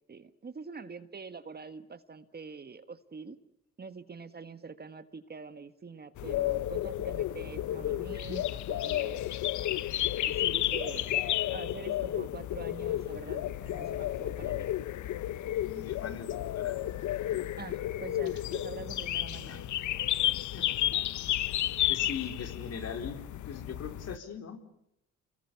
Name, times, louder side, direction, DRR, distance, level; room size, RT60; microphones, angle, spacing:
voice 1, 0.1-3.4 3.8-9.2 9.9-11.1 11.5-14.7 17.6-19.7, right 4 dB, 30° right, 11 dB, 1.6 m, -45 dB
sound 1, 6.2-24.2, left 13 dB, 75° left, 0.9 m, -32 dB
voice 2, 15.6-16.8 19.5-19.8 20.5-20.6 20.9-21.1 21.9-24.6, left 6 dB, 55° left, 5 dB, 4.1 m, -41 dB
29.0 x 21.5 x 7.1 m, 0.83 s
cardioid pair, 90°, 30 cm